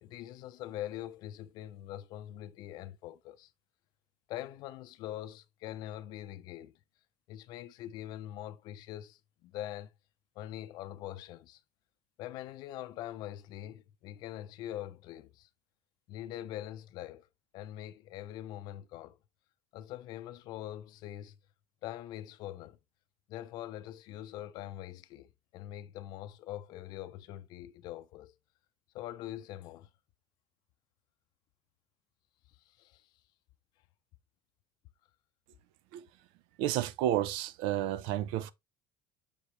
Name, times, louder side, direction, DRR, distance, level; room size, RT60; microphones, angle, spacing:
voice 1, 0.0-3.5 4.3-6.7 7.3-9.9 10.4-11.6 12.2-15.5 16.1-17.3 17.5-19.2 19.7-21.4 21.8-22.8 23.3-28.3 28.9-29.9 32.7-33.1, left 13 dB, 50° left, 0.6 m, -43 dB
voice 2, 36.6-38.5, right 12 dB, 65° right, 0.6 m, -31 dB
6.9 x 4.7 x 3.3 m
cardioid pair, 180°, 9 cm